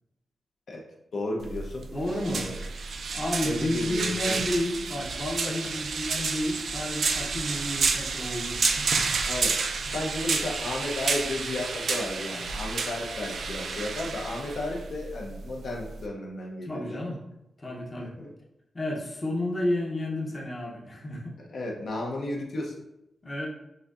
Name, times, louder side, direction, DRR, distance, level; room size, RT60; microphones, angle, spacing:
voice 1, 1.1-1.9 2.2-2.6 3.4-4.5 6.1-6.2 9.3-9.6 9.9-17.0 18.0-18.3 21.4-22.7, left 1 dB, 60° left, -1 dB, 0.7 m, -33 dB
sound 1, 1.4-16.1, right 4 dB, 60° right, 0.4 m, -30 dB
voice 2, 1.9-2.5 3.1-9.1 16.6-17.2 17.6-18.1 18.7-21.3 23.2-23.5, left 1 dB, 20° left, -3 dB, 0.7 m, -31 dB
6.2 x 2.7 x 2.4 m, 0.86 s
wide cardioid pair, 175°, 0 cm